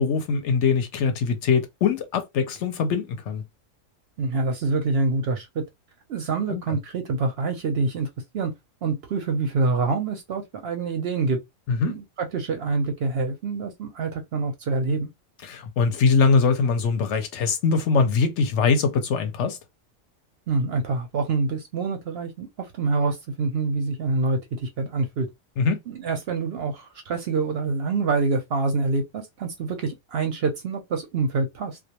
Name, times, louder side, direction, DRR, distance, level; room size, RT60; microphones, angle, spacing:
voice 1, 0.0-3.4 6.5-6.8 11.7-11.9 15.4-19.6 25.6-25.8, left 5 dB, 70° left, 0.8 m, -22 dB
voice 2, 4.2-5.6 6.1-8.1 8.3-8.5 8.8-11.4 11.9-15.1 20.5-25.3 25.9-31.8, right 3 dB, 60° right, 0.7 m, -26 dB
2.2 x 2.2 x 2.8 m
omnidirectional pair, 1.3 m